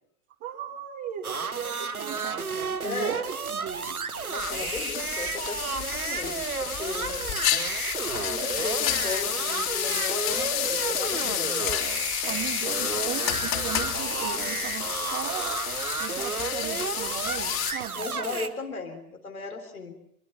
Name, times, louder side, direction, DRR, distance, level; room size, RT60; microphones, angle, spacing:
voice 1, 0.4-4.0 12.3-15.6 16.0-18.1, right 9 dB, 40° right, -2 dB, 2.6 m, -37 dB
sound 1, 1.2-18.5, right 5 dB, 85° right, 1.4 m, -32 dB
voice 2, 2.8-3.2 4.3-7.2 8.1-11.7 17.9-20.0, left 4 dB, 80° left, 5 dB, 3.9 m, -36 dB
sound 2, 4.4-17.7, left 12 dB, 40° left, 3.8 m, -30 dB
25.5 x 23.0 x 5.8 m, 0.72 s
figure-of-eight pair, 90°, 42 cm